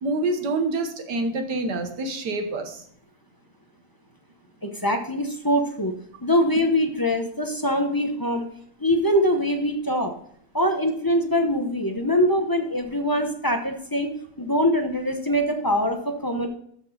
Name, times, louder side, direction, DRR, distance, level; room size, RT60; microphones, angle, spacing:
voice 1, 0.0-2.8, right 2 dB, 80° right, 6 dB, 1.9 m, -27 dB
voice 2, 4.6-5.9 6.2-8.4 8.8-10.1 10.5-16.5, equal, 20° left, 4 dB, 0.6 m, -23 dB
13.0 x 5.0 x 4.1 m, 0.67 s
omnidirectional pair, 1.8 m